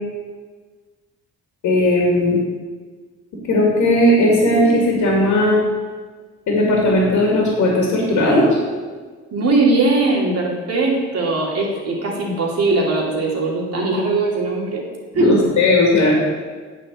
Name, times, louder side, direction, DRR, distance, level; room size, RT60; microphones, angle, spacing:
voice 1, 1.6-2.4 3.5-5.6 6.5-8.5 15.1-16.1, left 1 dB, 75° left, -2 dB, 2.4 m, -16 dB
voice 2, 9.3-14.8 15.1-15.4, right 2 dB, 55° right, -3 dB, 2.7 m, -20 dB
8.9 x 4.5 x 7.4 m, 1.5 s
cardioid pair, 90°, 30 cm